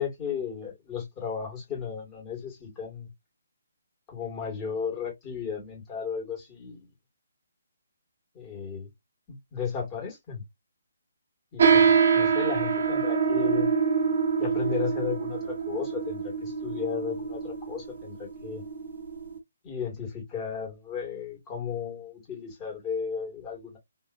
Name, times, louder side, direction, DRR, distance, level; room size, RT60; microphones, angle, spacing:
voice 1, 0.0-3.1 4.1-6.9 8.3-8.9 9.3-10.4 11.5-13.7 14.4-18.6 19.6-23.8, left 7 dB, 15° left, 2.2 m, -34 dB
sound 1, 11.6-19.4, right 6 dB, 50° right, 1.0 m, -25 dB
3.5 x 2.9 x 2.6 m
hypercardioid pair, 160°, 0 cm